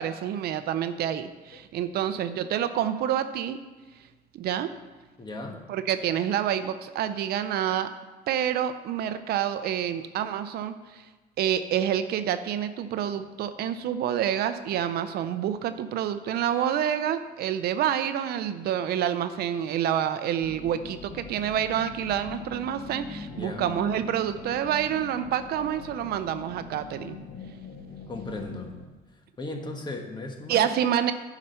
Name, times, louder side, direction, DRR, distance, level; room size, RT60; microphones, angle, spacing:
voice 1, 0.0-3.6 4.3-4.7 5.7-7.9 8.3-11.0 11.4-27.2 30.5-31.1, right 10 dB, 70° right, 11 dB, 0.6 m, -28 dB
voice 2, 5.2-5.6 23.3-23.6 28.1-28.7 29.4-30.7, left 2 dB, 25° left, 3 dB, 1.3 m, -36 dB
sound 1, 20.4-28.9, left 4 dB, 55° left, 1.0 m, -41 dB
10.0 x 5.0 x 5.5 m, 1.2 s
cardioid pair, 110°, 17 cm